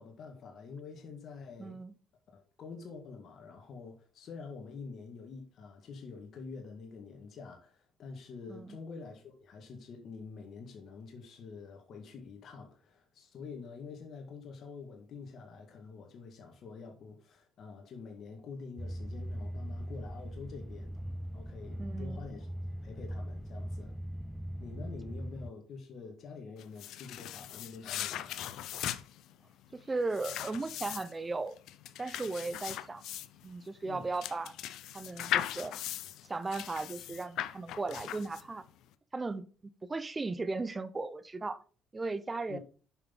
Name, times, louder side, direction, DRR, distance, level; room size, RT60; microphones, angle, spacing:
voice 1, 0.0-1.8 2.3-21.0 21.3-22.5 22.8-23.9 24.6-28.4 33.8-34.1 42.5-42.6, left 4 dB, 60° left, 1.9 m, -47 dB
voice 2, 1.6-1.9 8.5-8.8 21.8-22.2 29.7-31.5 32.0-33.0 33.4-34.5 34.9-35.8 36.3-38.6 39.1-41.6 41.9-42.6, right 3 dB, 20° right, 0.9 m, -36 dB
sound 1, 18.8-25.5, equal, ahead, 0.3 m, -40 dB
sound 2, 26.6-38.7, left 12 dB, 75° left, 0.6 m, -39 dB
8.2 x 5.6 x 4.0 m
cardioid pair, 100°, 0 cm